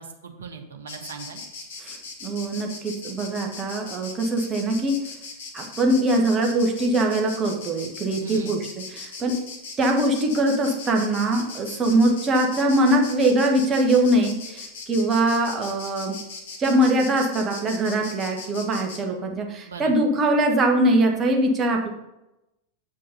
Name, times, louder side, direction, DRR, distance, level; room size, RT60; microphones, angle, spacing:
voice 1, 0.0-1.4 8.2-8.6 19.7-19.9, right 6 dB, 65° right, 5 dB, 1.1 m, -38 dB
Insect, 0.9-19.0, left 4 dB, 55° left, 1.8 m, -39 dB
voice 2, 1.8-5.0 5.5-9.4 9.8-16.2 16.6-21.9, right 1 dB, 25° right, 2 dB, 1.4 m, -22 dB
8.4 x 5.3 x 5.4 m, 0.93 s
figure-of-eight pair, 90°, 0 cm